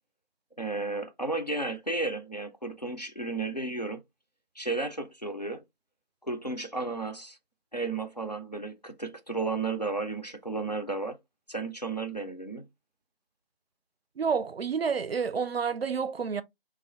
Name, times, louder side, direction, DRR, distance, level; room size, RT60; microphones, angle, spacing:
voice 1, 0.6-4.0 4.6-5.6 6.2-7.4 7.7-11.2 11.5-12.7, right 3 dB, 45° left, 0.5 m, -33 dB
voice 2, 14.2-16.4, right 6 dB, 75° right, 0.5 m, -29 dB
3.5 x 2.4 x 3.2 m
figure-of-eight pair, 175°, 31 cm